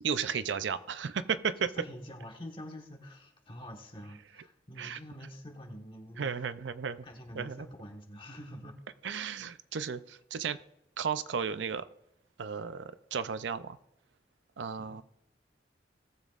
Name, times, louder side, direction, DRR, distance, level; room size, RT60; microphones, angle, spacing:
voice 1, 0.0-1.7 4.8-5.0 6.2-7.0 7.3-7.7 9.0-10.6 11.0-11.8 12.4-13.8 14.6-15.0, right 6 dB, 80° right, 13 dB, 0.5 m, -34 dB
voice 2, 1.7-6.5 7.0-8.8 9.7-9.8 14.8-15.0, equal, 30° left, 2 dB, 1.4 m, -46 dB
18.5 x 7.2 x 2.5 m, 0.82 s
head